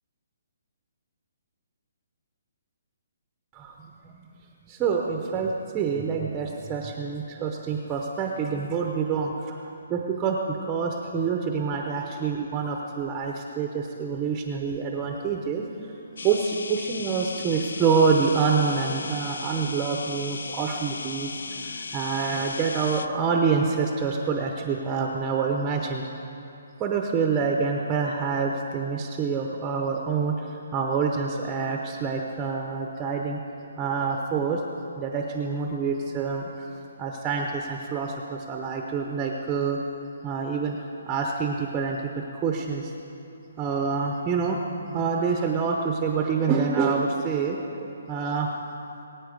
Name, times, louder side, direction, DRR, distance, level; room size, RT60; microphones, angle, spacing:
voice 1, 4.7-9.6 9.9-15.7 16.2-21.3 21.5-26.1 26.8-33.4 33.8-34.6 35.0-36.7 37.0-39.8 40.2-40.8 41.1-42.9 43.6-48.5, right 5 dB, 15° right, 1 dB, 0.7 m, -27 dB
sound 1, 16.2-23.1, left 4 dB, 75° left, 0.6 m, -36 dB
21.5 x 8.9 x 5.2 m, 2.7 s
hypercardioid pair, 170°, 0 cm